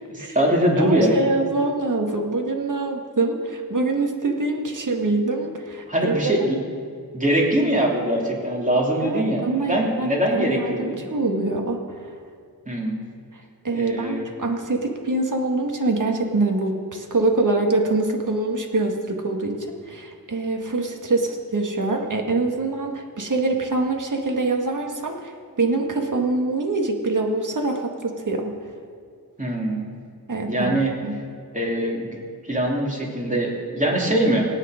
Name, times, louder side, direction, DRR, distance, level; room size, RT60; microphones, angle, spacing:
voice 1, 0.1-1.2 5.9-6.6 7.1-11.0 12.7-13.0 13.7-14.3 29.4-29.9 30.5-30.9 31.5-32.1 32.4-34.4, right 1 dB, 20° right, -2 dB, 3.1 m, -22 dB
voice 2, 0.8-6.2 9.0-11.8 13.6-25.3 25.6-28.6 30.3-31.2, right 2 dB, 50° right, 2 dB, 1.9 m, -24 dB
25.0 x 9.2 x 5.1 m, 2.3 s
wide cardioid pair, 125°, 38 cm